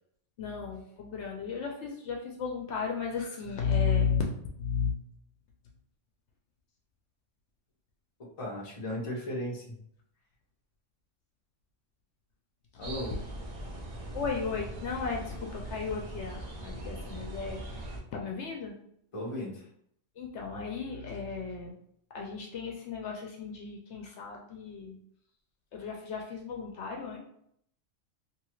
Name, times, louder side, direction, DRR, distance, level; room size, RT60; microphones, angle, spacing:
voice 1, 0.4-4.2 4.6-5.0 12.7-12.8 14.1-17.9 18.1-18.8 20.2-21.7 22.1-25.0 25.7-27.2, left 6 dB, 70° left, 0 dB, 0.8 m, -34 dB
voice 2, 8.4-9.8 12.8-13.2 19.1-19.7, left 1 dB, 30° left, -3 dB, 0.7 m, -36 dB
sound 1, 12.8-18.0, right 1 dB, 45° right, 0.4 m, -40 dB
2.9 x 2.3 x 3.0 m, 0.70 s
omnidirectional pair, 1.3 m